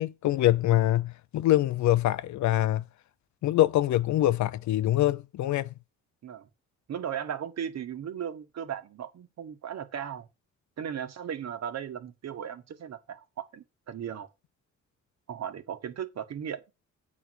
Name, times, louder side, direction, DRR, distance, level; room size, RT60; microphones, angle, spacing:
voice 1, 0.0-2.8 3.4-5.7, left 14 dB, 70° left, 0.7 m, -24 dB
voice 2, 6.9-10.3 10.8-14.3 15.3-16.6, right 8 dB, 60° right, 1.5 m, -36 dB
8.4 x 4.2 x 6.4 m
cardioid pair, 90°, 30 cm